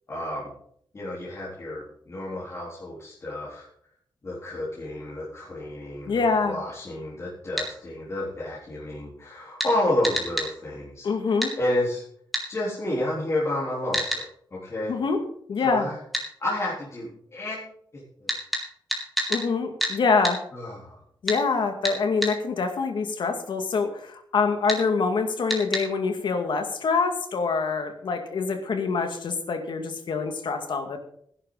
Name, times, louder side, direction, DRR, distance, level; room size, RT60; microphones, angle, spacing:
voice 1, 0.1-0.5 0.9-3.7 4.2-12.0 12.5-15.0 15.6-16.0 16.4-17.6 17.9-18.3 20.5-21.0, left 1 dB, 35° left, -8 dB, 4.0 m, -30 dB
voice 2, 6.1-6.6 11.0-11.5 14.9-15.2 15.5-15.9 19.3-20.4 21.2-31.0, left 4 dB, 70° left, 6 dB, 2.2 m, -25 dB
sound 1, 7.6-7.7 9.6-9.7 10.0-10.5 11.4-11.5 12.3-12.5 13.9-14.2 16.1-16.3 18.3-19.4 19.8-20.0 20.2-20.4 21.3-21.4 21.8-22.3 24.7-24.8 25.5-25.9, equal, ahead, 3.6 m, -28 dB
16.5 x 11.0 x 4.1 m, 0.66 s
wide cardioid pair, 150°, 8 cm